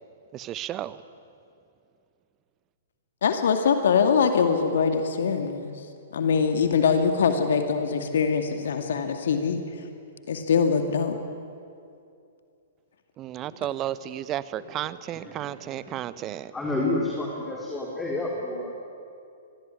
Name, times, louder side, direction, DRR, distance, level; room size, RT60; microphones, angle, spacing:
voice 1, 0.3-1.0 13.2-16.5, right 12 dB, 25° right, 1.0 m, -33 dB
voice 2, 3.2-5.7 6.1-9.6 10.3-11.2, left 6 dB, 60° left, 2.3 m, -23 dB
voice 3, 15.1-15.9 16.2-18.7, left 2 dB, 10° left, 4.2 m, -31 dB
26.0 x 22.5 x 10.0 m
figure-of-eight pair, 115°, 0 cm